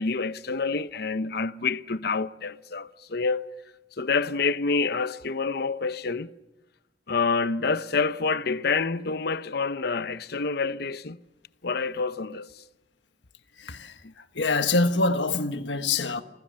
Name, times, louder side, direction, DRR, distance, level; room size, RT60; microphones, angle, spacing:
voice 1, 0.0-3.5 4.0-6.3 7.1-11.2 11.6-12.5 14.0-14.1, left 4 dB, 60° left, 0.9 m, -27 dB
voice 2, 13.6-16.2, left 3 dB, 85° left, 1.4 m, -25 dB
29.0 x 21.0 x 7.6 m
head